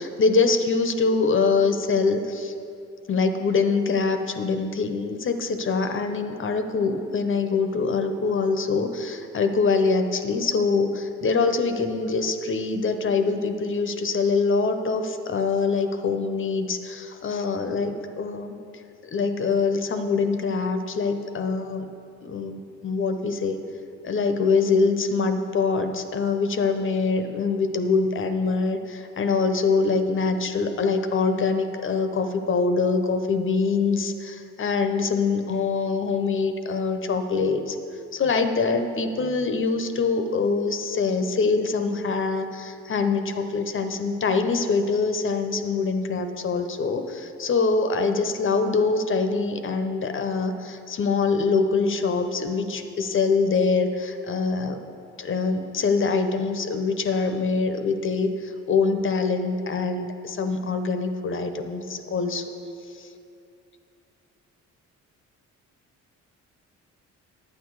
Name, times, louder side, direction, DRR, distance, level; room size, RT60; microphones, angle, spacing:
voice 1, 0.0-2.5 3.1-18.6 19.1-21.9 22.2-23.6 24.0-37.8 38.1-54.8 55.2-62.5 63.0-63.1, left 4 dB, 40° left, 7 dB, 0.8 m, -24 dB
9.6 x 8.6 x 4.7 m, 2.6 s
cardioid pair, 90°, 30 cm